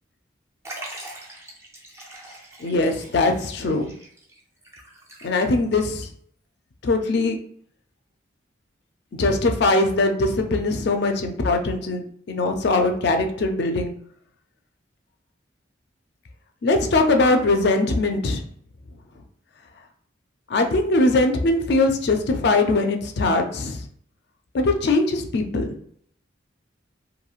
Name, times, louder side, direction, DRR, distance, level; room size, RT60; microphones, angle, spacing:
Liquid, 0.6-5.7 6.0-6.1 7.1-7.2, right 1 dB, 15° right, 0.5 m, -42 dB
voice 1, 2.6-3.9 5.2-6.1 6.8-7.4 9.2-13.9 16.6-18.4 20.5-23.9 24.5-25.8, left 2 dB, 55° left, 5 dB, 0.4 m, -21 dB
3.0 x 2.6 x 2.3 m, 0.64 s
head